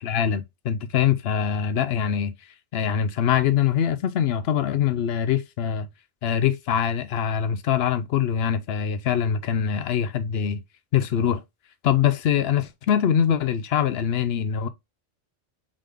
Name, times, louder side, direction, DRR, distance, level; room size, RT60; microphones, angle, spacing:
voice 1, 0.0-2.3 2.7-5.9 6.2-10.6 10.9-11.4 11.8-14.7, left 9 dB, 65° left, 0.8 m, -23 dB
3.8 x 3.3 x 3.4 m
omnidirectional pair, 1.2 m